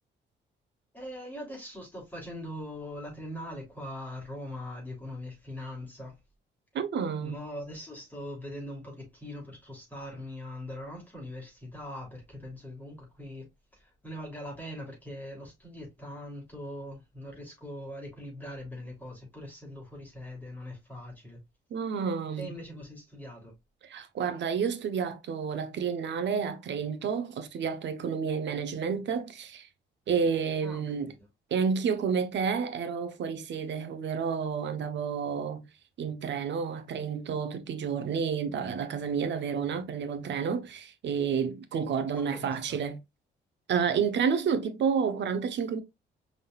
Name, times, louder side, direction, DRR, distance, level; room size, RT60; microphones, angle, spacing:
voice 1, 0.9-6.2 7.2-21.4 22.4-23.5 30.6-31.3 42.1-42.8, left 1 dB, 10° left, 3.2 m, -41 dB
voice 2, 6.7-7.4 21.7-22.5 23.8-29.7 30.1-31.1 31.5-35.6 36.0-43.0 43.7-45.8, right 6 dB, 65° right, 1.0 m, -30 dB
5.5 x 3.8 x 2.4 m
cardioid pair, 90°, 20 cm